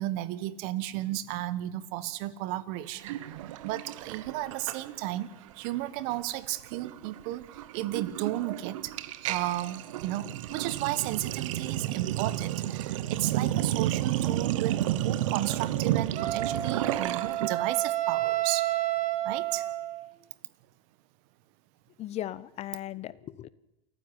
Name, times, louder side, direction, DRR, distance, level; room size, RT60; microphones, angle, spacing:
voice 1, 0.0-3.2 3.6-5.3 5.5-8.9 9.2-18.7 19.2-19.7, right 15 dB, 65° right, 16 dB, 1.4 m, -33 dB
Sink (filling or washing), 3.0-5.2 5.5-5.8 6.1-17.5, right 13 dB, 85° right, 1.0 m, -31 dB
Wind instrument woodwind instrument, 16.2-20.1, right 14 dB, 45° right, 1.7 m, -30 dB
voice 2, 22.0-23.5, left 13 dB, 40° left, 17 dB, 1.0 m, -37 dB
28.0 x 9.7 x 9.8 m, 0.93 s
supercardioid pair, 115°, 16 cm